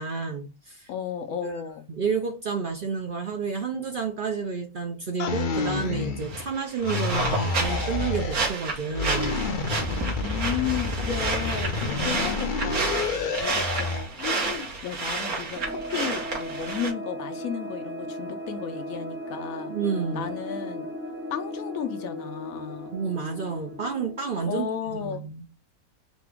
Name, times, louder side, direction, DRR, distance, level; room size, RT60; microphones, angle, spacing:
voice 1, 0.0-0.9 1.4-1.6 1.9-9.3 19.7-20.3 22.9-25.4, right 5 dB, 55° right, 0.6 m, -30 dB
voice 2, 0.9-1.9 9.8-19.7 20.1-20.9 21.3-22.9 24.4-25.3, left 8 dB, 80° left, 1.1 m, -34 dB
sound 1, 5.2-6.5 6.8-8.5 8.9-14.1, left 3 dB, 45° left, 0.7 m, -29 dB
sound 2, 6.2-16.9, right 3 dB, 80° right, 1.8 m, -31 dB
sound 3, 15.6-24.9, equal, 10° right, 0.6 m, -37 dB
4.1 x 2.9 x 3.5 m
omnidirectional pair, 1.5 m